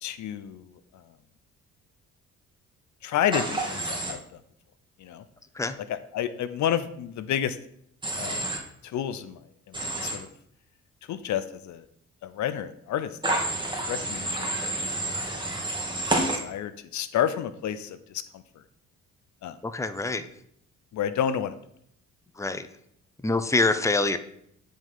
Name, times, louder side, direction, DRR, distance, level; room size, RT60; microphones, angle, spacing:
voice 1, 0.0-1.1 3.0-4.4 5.0-5.2 5.9-7.6 8.2-8.5 8.8-10.3 11.1-11.9 12.2-13.2 13.8-14.6 14.9-15.2 16.3-18.6 19.4-19.6 20.9-21.6, left 10 dB, 70° left, 13 dB, 0.7 m, -30 dB
Human voice / Train, 3.3-4.1 8.0-8.6 9.7-10.2 13.2-16.4, right 2 dB, 15° right, 2.2 m, -29 dB
voice 2, 19.6-20.2 22.4-22.6 23.2-24.2, left 3 dB, 10° left, 10 dB, 0.7 m, -25 dB
9.8 x 5.2 x 5.6 m, 0.70 s
cardioid pair, 90°, 30 cm